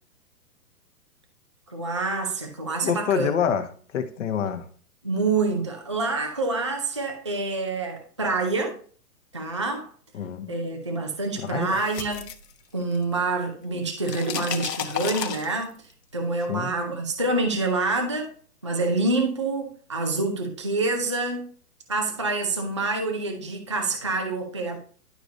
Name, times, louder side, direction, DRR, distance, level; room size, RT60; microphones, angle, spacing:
voice 1, 1.7-3.5 5.0-8.8 9.3-9.9 10.5-12.3 12.7-15.7 16.1-18.3 18.6-21.5 21.9-24.8, right 3 dB, 20° right, 0.4 m, -27 dB
voice 2, 2.8-3.7 3.9-4.6 10.1-10.5 11.5-11.8 16.5-16.7, left 8 dB, 50° left, 1.4 m, -26 dB
sound 1, 11.5-13.2 13.5-15.9, left 8 dB, 80° left, 1.3 m, -33 dB
11.5 x 4.9 x 2.7 m
hypercardioid pair, 160°, 48 cm